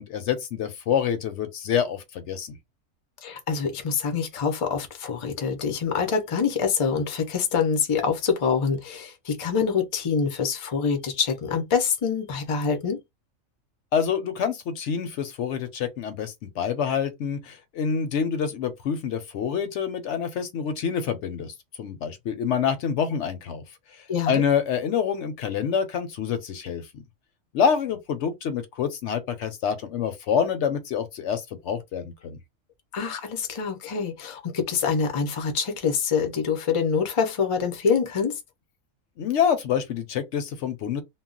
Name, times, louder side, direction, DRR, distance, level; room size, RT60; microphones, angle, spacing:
voice 1, 0.0-2.6 13.9-23.6 24.3-26.9 27.5-32.4 39.2-41.0, left 7 dB, 65° left, 0.8 m, -27 dB
voice 2, 3.2-13.0 24.1-24.4 32.9-38.4, left 6 dB, 45° left, 0.4 m, -25 dB
2.3 x 2.0 x 3.7 m
omnidirectional pair, 1.4 m